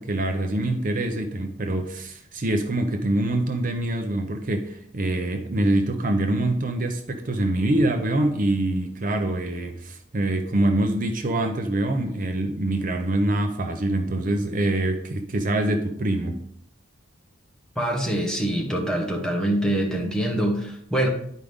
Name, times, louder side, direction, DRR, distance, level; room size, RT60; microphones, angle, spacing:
voice 1, 0.0-16.4, right 1 dB, 45° right, 5 dB, 0.6 m, -25 dB
voice 2, 17.7-21.1, right 1 dB, 5° left, 0 dB, 1.4 m, -24 dB
11.0 x 5.0 x 3.5 m, 0.69 s
head